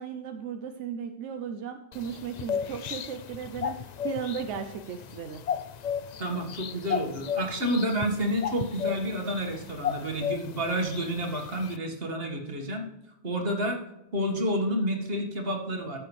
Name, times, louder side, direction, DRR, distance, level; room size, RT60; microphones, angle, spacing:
voice 1, 0.0-5.4, right 7 dB, 85° right, 6 dB, 1.0 m, -36 dB
sound 1, 1.9-11.8, left 8 dB, 55° left, 0.4 m, -35 dB
voice 2, 6.2-12.9 13.2-13.8 14.1-16.0, equal, 55° right, 1 dB, 1.9 m, -29 dB
15.0 x 6.8 x 3.2 m, 0.89 s
omnidirectional pair, 1.2 m